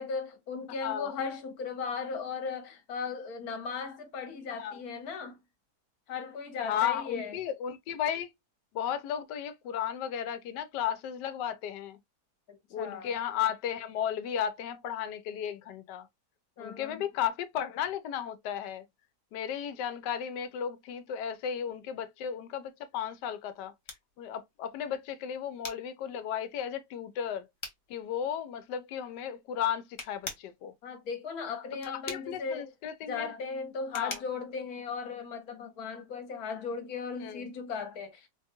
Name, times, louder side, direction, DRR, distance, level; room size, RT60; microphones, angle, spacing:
voice 1, 0.0-5.4 6.1-7.4 12.5-13.1 16.6-17.0 30.8-32.7 33.1-38.3, left 5 dB, 65° left, 1.3 m, -37 dB
voice 2, 0.8-1.1 4.6-4.8 6.6-8.3 8.7-12.0 12.7-16.1 16.6-18.8 19.3-23.7 24.2-27.5 27.9-30.7 32.1-33.3 33.9-34.2 37.2-37.4, left 9 dB, 90° left, 1.2 m, -34 dB
sound 1, 23.1-35.6, left 2 dB, 35° left, 0.4 m, -47 dB
3.9 x 2.2 x 2.8 m
omnidirectional pair, 1.8 m